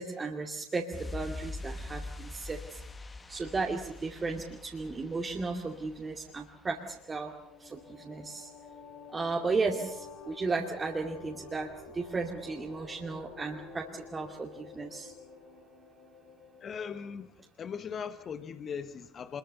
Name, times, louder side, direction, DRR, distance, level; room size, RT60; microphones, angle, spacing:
voice 1, 0.0-2.8 3.3-7.3 7.6-8.5 9.1-15.1, right 3 dB, 25° right, 2.5 m, -35 dB
sound 1, 0.9-7.4 7.7-7.8, left 2 dB, 20° left, 1.9 m, -44 dB
sound 2, 7.0-17.3, left 4 dB, 65° left, 6.1 m, -50 dB
voice 2, 16.6-19.4, left 6 dB, 40° left, 1.4 m, -39 dB
25.5 x 22.0 x 7.0 m
hypercardioid pair, 65°, 0 cm